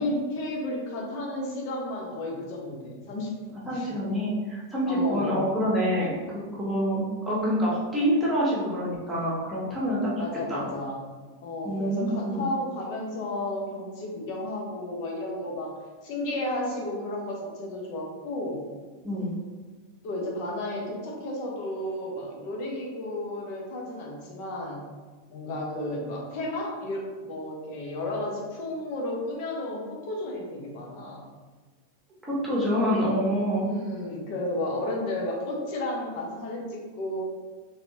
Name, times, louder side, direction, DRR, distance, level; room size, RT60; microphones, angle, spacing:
voice 1, 0.0-3.9 4.9-5.4 6.2-6.3 10.2-11.0 11.4-18.6 20.0-24.8 25.3-31.2 33.6-37.2, left 1 dB, 45° left, -1 dB, 1.0 m, -33 dB
voice 2, 3.7-10.1 10.5-10.6 11.6-12.4 19.0-19.3 32.3-33.7, equal, 10° right, -7 dB, 1.4 m, -26 dB
4.2 x 3.3 x 2.8 m, 1.3 s
figure-of-eight pair, 90°, 0 cm